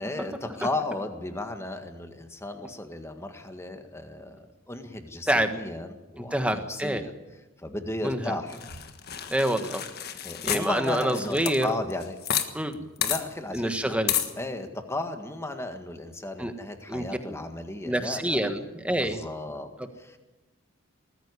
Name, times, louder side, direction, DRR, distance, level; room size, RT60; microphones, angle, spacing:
voice 1, 0.0-7.1 7.6-8.6 10.2-12.2 12.8-14.0 14.4-18.5 19.0-19.7 20.0-20.2, left 2 dB, 10° left, 6 dB, 1.7 m, -35 dB
voice 2, 6.3-7.0 8.0-8.4 9.3-9.8 10.4-11.7 12.5-12.7 13.5-14.1 16.4-16.5 16.9-17.4 17.8-19.2 19.8-19.9, right 1 dB, 5° right, 7 dB, 1.4 m, -27 dB
sound 1, 8.5-12.5 12.7-12.8 13.0-13.2 14.1-14.3, left 9 dB, 50° left, 1.5 m, -30 dB
20.0 x 14.5 x 9.8 m, 1.1 s
head